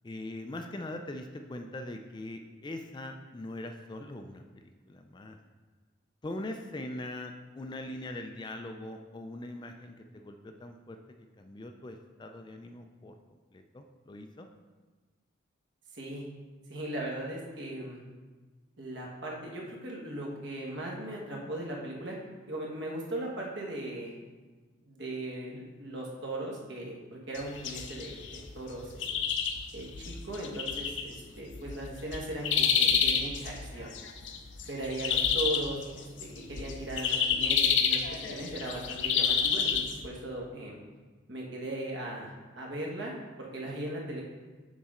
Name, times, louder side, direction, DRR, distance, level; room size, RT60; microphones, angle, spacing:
voice 1, 0.0-4.4 4.9-5.4 6.2-11.0 11.4-14.5, left 1 dB, 20° left, 5 dB, 0.3 m, -41 dB
voice 2, 15.9-16.2 16.7-18.0 18.8-22.2 22.5-24.1 24.8-29.1 29.7-33.9 34.7-40.8 41.3-44.2, right 1 dB, 65° right, -2 dB, 1.4 m, -38 dB
sound 1, 27.3-40.1, left 7 dB, 65° left, 0.6 m, -29 dB
7.0 x 5.3 x 3.7 m, 1.3 s
head